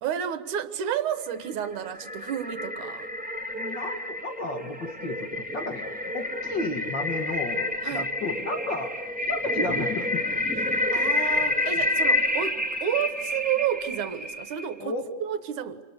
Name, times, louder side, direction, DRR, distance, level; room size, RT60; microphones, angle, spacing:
voice 1, 0.0-3.1 7.8-8.1 10.7-14.9 15.2-15.8, right 9 dB, 75° right, 11 dB, 2.8 m, -31 dB
sound 1, 1.4-14.7, left 1 dB, 5° right, 0.6 m, -29 dB
voice 2, 3.5-5.9 6.1-8.9 9.3-10.4 11.0-11.1 14.8-15.0, left 2 dB, 40° left, 6 dB, 2.0 m, -33 dB
28.0 x 25.0 x 8.3 m, 1.3 s
omnidirectional pair, 3.6 m